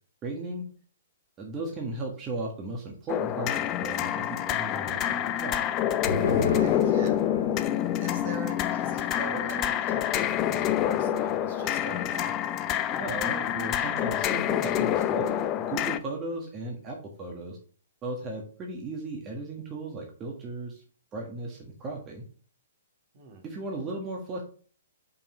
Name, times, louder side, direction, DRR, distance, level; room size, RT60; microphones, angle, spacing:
voice 1, 0.2-0.6 1.4-5.7 12.9-17.6 18.0-20.8 21.1-22.2 23.4-24.4, right 2 dB, 25° right, 0 dB, 1.7 m, -36 dB
sound 1, 3.1-16.0, left 11 dB, 30° left, 0.5 m, -27 dB
sound 2, 5.5-12.4 12.7-12.8 13.2-13.6, left 3 dB, 80° left, 1.6 m, -37 dB
voice 2, 6.4-7.2 8.0-12.3 23.1-23.4, right 3 dB, 45° right, 3 dB, 2.1 m, -42 dB
5.6 x 5.4 x 5.5 m, 0.43 s
figure-of-eight pair, 120°, 0 cm